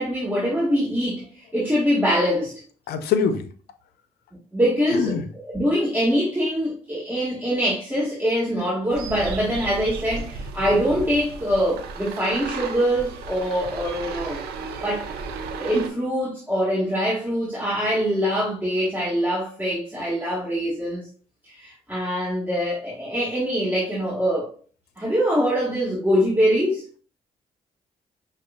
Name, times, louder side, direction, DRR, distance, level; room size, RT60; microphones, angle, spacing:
voice 1, 0.0-2.6 4.5-5.1 5.4-15.1 15.5-21.1 21.4-24.5 25.0-26.8, equal, 10° right, 1.8 m, -24 dB
voice 2, 2.9-3.4 4.9-5.2, left 6 dB, 80° left, 0.6 m, -23 dB
sound 1, 8.9-15.9, right 4 dB, 85° right, 0.6 m, -34 dB
6.1 x 2.4 x 2.4 m
supercardioid pair, 55°, 16 cm